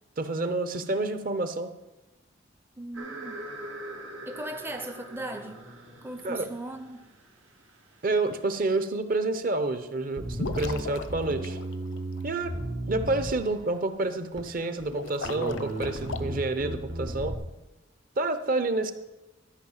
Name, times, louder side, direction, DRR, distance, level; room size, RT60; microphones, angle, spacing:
voice 1, 0.2-1.7 6.2-6.5 8.0-11.6 12.2-12.6 12.9-17.4 18.2-18.9, right 2 dB, 45° right, 0.8 m, -29 dB
voice 2, 2.8-3.5 4.3-5.6 6.0-7.1, right 1 dB, 10° right, 0.5 m, -38 dB
sound 1, 2.9-8.8, right 1 dB, 90° right, 1.9 m, -44 dB
Bass guitar, 10.2-13.7 14.4-14.9 15.2-17.4, right 1 dB, 70° right, 1.5 m, -35 dB
sound 2, 10.3-12.2 14.8-16.2, left 3 dB, 75° left, 0.7 m, -37 dB
12.5 x 5.5 x 7.3 m
head